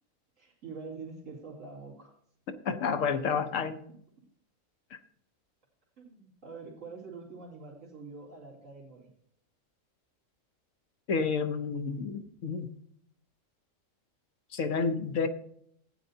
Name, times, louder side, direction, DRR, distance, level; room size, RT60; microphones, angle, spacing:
voice 1, 0.4-2.1 6.0-9.1, right 4 dB, 70° right, -2 dB, 2.7 m, -45 dB
voice 2, 2.6-3.8 4.9-5.0 11.1-12.7 14.5-15.3, left 5 dB, 70° left, 7 dB, 1.2 m, -30 dB
15.5 x 9.2 x 2.7 m, 0.66 s
omnidirectional pair, 1.4 m